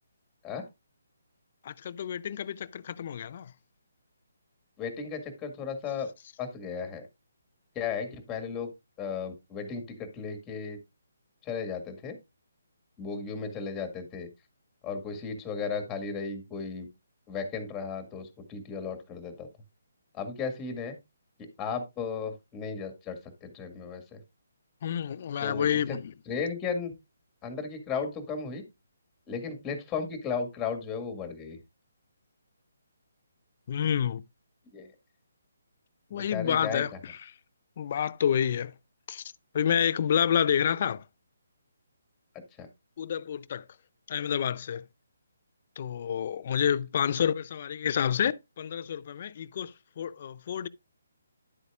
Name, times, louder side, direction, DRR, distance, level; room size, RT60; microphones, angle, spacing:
voice 1, 1.6-3.5 24.8-26.1 33.7-34.2 36.1-37.3 37.8-38.7 39.1-39.2 39.5-41.0 43.0-43.6 44.1-44.8 45.8-50.7, left 8 dB, 45° left, 0.5 m, -29 dB
voice 2, 4.8-6.1 6.4-7.1 7.8-8.7 9.0-10.8 11.4-12.2 13.0-14.3 14.8-16.9 17.3-19.5 20.1-20.9 21.6-24.2 25.4-26.0 26.3-26.9 27.4-28.6 29.3-31.6 34.7-34.9 36.1-36.8 42.6-42.7, left 5 dB, 15° left, 1.9 m, -35 dB
11.0 x 8.1 x 2.4 m
figure-of-eight pair, 150°, 0 cm